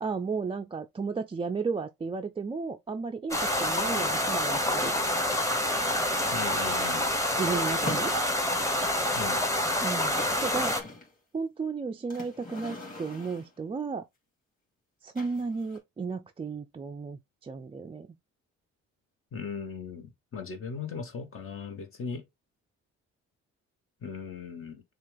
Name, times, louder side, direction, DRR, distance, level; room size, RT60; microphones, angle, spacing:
voice 1, 0.0-5.0 7.4-8.1 9.8-10.1 10.4-10.7 11.3-14.0 15.0-18.1, right 4 dB, 20° right, 0.4 m, -33 dB
sound 1, 3.3-10.8, left 1 dB, 10° left, 1.0 m, -27 dB
sound 2, 5.0-6.3 7.5-8.7 9.6-9.7 9.9-11.1 12.1-13.6 15.2-15.8, left 2 dB, 25° left, 2.7 m, -42 dB
voice 2, 6.3-7.0 9.1-9.4 19.3-22.2 24.0-24.8, left 5 dB, 45° left, 1.0 m, -38 dB
6.5 x 2.4 x 3.3 m
cardioid pair, 90°, 30 cm